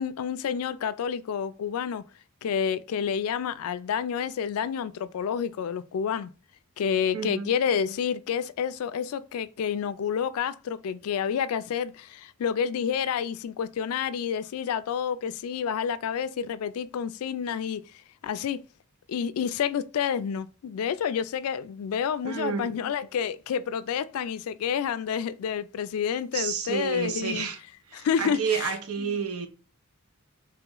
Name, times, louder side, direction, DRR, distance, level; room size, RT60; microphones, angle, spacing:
voice 1, 0.0-2.0 2.4-6.3 6.8-17.8 18.2-18.6 19.1-27.5 27.9-28.7 29.0-29.2, left 7 dB, 75° left, 0.3 m, -29 dB
voice 2, 7.1-7.5 22.2-22.8 26.3-27.6 27.9-29.5, right 6 dB, 80° right, 0.6 m, -30 dB
3.0 x 3.0 x 3.7 m
head